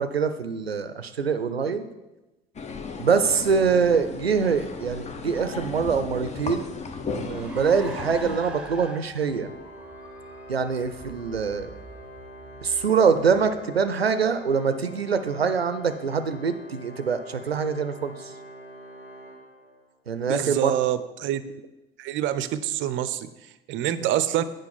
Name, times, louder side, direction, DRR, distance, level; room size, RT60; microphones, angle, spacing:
voice 1, 0.0-1.9 3.0-6.7 7.1-9.5 10.5-11.7 12.6-18.3 20.1-20.7 24.0-24.1, right 6 dB, 90° right, 10 dB, 0.5 m, -24 dB
sound 1, 2.5-8.4, left 4 dB, 25° left, 0.7 m, -35 dB
Car, 6.1-13.9, equal, 5° right, 1.0 m, -44 dB
Organ, 9.2-20.1, equal, 75° left, 2.1 m, -45 dB
voice 2, 20.3-21.4 22.0-24.4, right 12 dB, 40° right, 14 dB, 0.6 m, -26 dB
8.1 x 5.1 x 5.6 m, 1.0 s
figure-of-eight pair, 65°, 30 cm